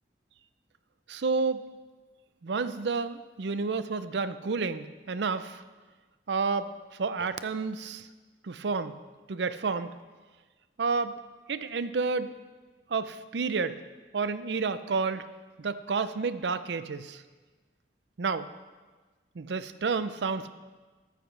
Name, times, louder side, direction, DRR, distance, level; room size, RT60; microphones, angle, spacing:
voice 1, 1.1-1.6 2.4-5.6 6.3-8.1 8.4-8.9 9.3-9.9 10.8-11.2 11.5-12.3 12.9-13.8 14.1-15.2 15.6-17.2 18.2-18.5 19.4-20.5, right 4 dB, 85° right, 13 dB, 0.5 m, -30 dB
14.0 x 13.0 x 3.3 m, 1.3 s
head